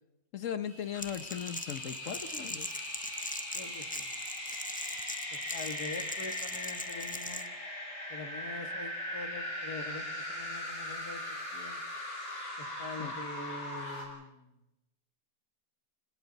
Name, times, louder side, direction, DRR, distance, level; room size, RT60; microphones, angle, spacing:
voice 1, 0.3-2.7 13.0-13.1, left 8 dB, 60° left, 12 dB, 1.3 m, -38 dB
sound 1, 0.6-14.1, left 1 dB, 40° left, 5.4 m, -40 dB
Crackle, 1.0-7.5, left 1 dB, 10° left, 0.6 m, -41 dB
voice 2, 3.5-4.1 5.5-7.5 8.1-11.2 11.5-11.8 12.6-14.5, left 3 dB, 90° left, 6 dB, 2.5 m, -44 dB
30.0 x 26.0 x 4.1 m, 0.94 s
omnidirectional pair, 1.6 m